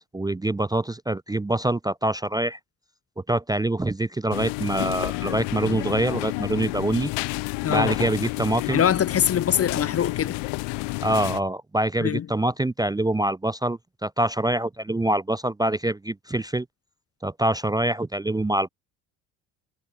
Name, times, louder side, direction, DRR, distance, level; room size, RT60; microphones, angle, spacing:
voice 1, 0.1-2.6 3.2-7.1 7.7-8.8 11.0-16.7 17.2-18.7, right 1 dB, 10° right, 0.6 m, -25 dB
sound 1, 4.3-11.4, left 28 dB, 80° left, 2.9 m, -30 dB
voice 2, 7.6-7.9 8.7-10.4 12.0-12.3, left 9 dB, 35° left, 0.7 m, -23 dB
supercardioid pair, 70°, 41 cm